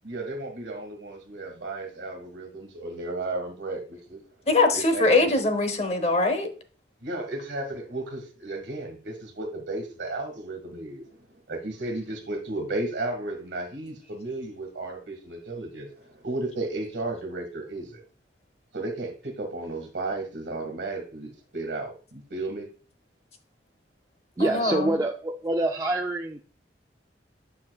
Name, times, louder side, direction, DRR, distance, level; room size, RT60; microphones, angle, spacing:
voice 1, 0.0-4.2 4.7-5.3 7.0-18.0 18.7-22.7, right 2 dB, 70° right, 3 dB, 1.6 m, -34 dB
voice 2, 4.5-6.5 24.4-25.0, left 2 dB, 35° left, 7 dB, 0.8 m, -22 dB
voice 3, 24.4-26.4, right 1 dB, 20° right, 1 dB, 0.3 m, -26 dB
9.0 x 5.5 x 2.3 m, 0.39 s
head